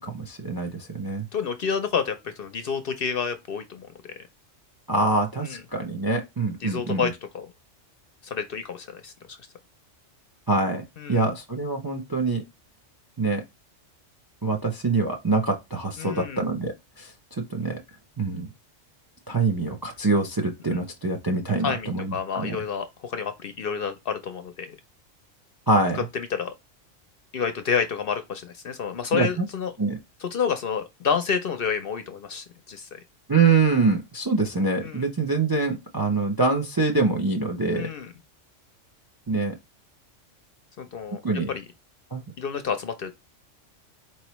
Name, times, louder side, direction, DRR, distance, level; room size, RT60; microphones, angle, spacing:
voice 1, 0.0-1.2 4.9-7.1 10.5-12.4 13.2-13.4 14.4-17.1 17.5-17.8 18.2-18.5 19.3-22.6 25.7-26.0 29.1-29.5 29.8-30.0 33.3-37.9 39.3-39.6 41.2-41.5 42.1-42.2, right 3 dB, 30° right, 0.4 m, -25 dB
voice 2, 1.3-3.9 5.4-5.6 6.6-7.5 8.2-9.4 11.0-11.2 16.0-16.4 20.7-20.8 21.6-24.8 26.1-26.5 27.3-29.7 30.2-33.0 34.8-35.0 37.7-38.1 40.8-41.2 41.5-41.6 42.4-43.1, left 6 dB, 60° left, 0.7 m, -29 dB
4.4 x 3.1 x 3.0 m
omnidirectional pair, 1.3 m